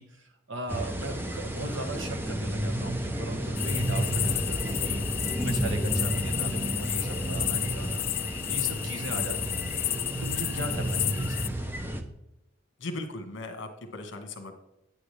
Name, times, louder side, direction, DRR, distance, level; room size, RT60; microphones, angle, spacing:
voice 1, 0.0-8.1 8.5-9.7 10.2-11.6, right 2 dB, 65° right, 5 dB, 1.4 m, -38 dB
sound 1, 0.7-12.0, right 1 dB, 10° right, 0.8 m, -31 dB
sound 2, 3.6-11.5, left 14 dB, 45° left, 0.4 m, -32 dB
voice 2, 12.8-14.5, left 2 dB, 60° left, 6 dB, 1.5 m, -38 dB
9.4 x 9.3 x 3.3 m, 0.88 s
head